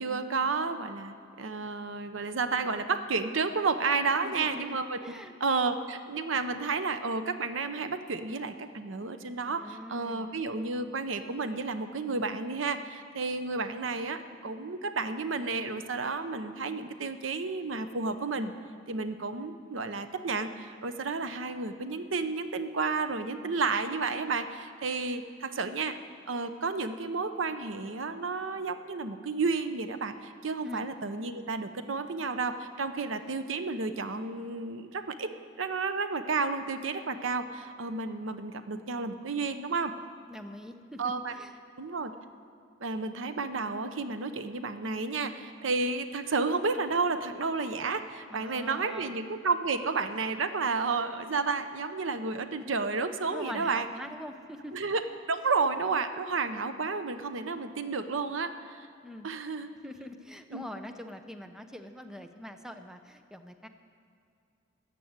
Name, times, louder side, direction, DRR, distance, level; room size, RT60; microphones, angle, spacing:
voice 1, 0.0-5.0 5.4-18.5 18.9-26.0 26.3-35.3 35.6-39.9 41.0-41.3 41.8-42.1 42.8-53.9 54.7-58.9 59.2-59.7 60.5-60.6, right 4 dB, 80° right, 9 dB, 0.8 m, -31 dB
voice 2, 4.2-5.4 9.4-10.4 30.6-30.9 40.3-41.0 41.3-41.5 48.3-49.2 53.3-54.7 59.0-59.3 59.8-63.7, left 1 dB, 5° right, 7 dB, 0.6 m, -43 dB
14.0 x 7.7 x 9.4 m, 2.5 s
head